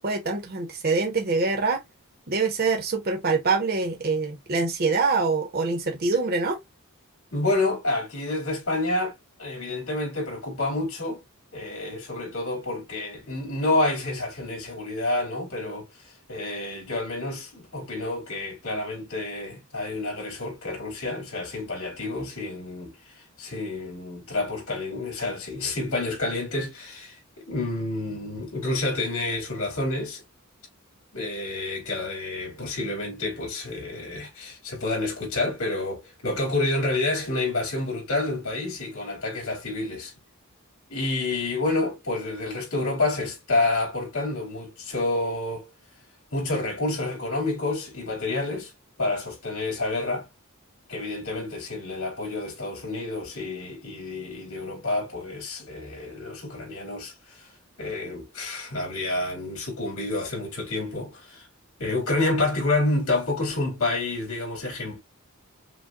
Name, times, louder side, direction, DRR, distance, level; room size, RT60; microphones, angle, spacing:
voice 1, 0.0-1.8 2.3-6.6, right 4 dB, 45° right, 0.9 m, -25 dB
voice 2, 7.3-9.1 9.4-11.2 11.5-30.2 31.1-40.1 40.9-45.7 46.3-48.7 49.0-50.3 50.9-57.5 57.8-61.5 61.8-65.0, left 2 dB, 85° left, 3.1 m, -29 dB
6.1 x 2.3 x 2.4 m
head